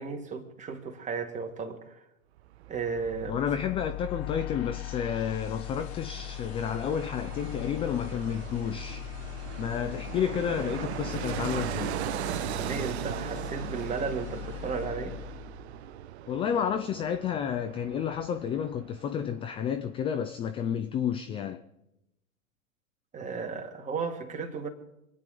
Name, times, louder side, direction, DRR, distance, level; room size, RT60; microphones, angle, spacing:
voice 1, 0.0-2.0 2.7-3.4 12.6-15.2 23.1-24.7, right 5 dB, 15° right, 2.3 m, -34 dB
Fixed-wing aircraft airplane, 2.4-19.3 19.6-19.7, right 12 dB, 50° right, 0.7 m, -39 dB
sound 1, 3.0-16.0, left 17 dB, 50° left, 1.1 m, -40 dB
voice 2, 3.3-9.1 9.6-11.9 16.3-21.6, left 8 dB, 15° left, 0.4 m, -31 dB
26.0 x 9.6 x 5.1 m
figure-of-eight pair, 100°, 41 cm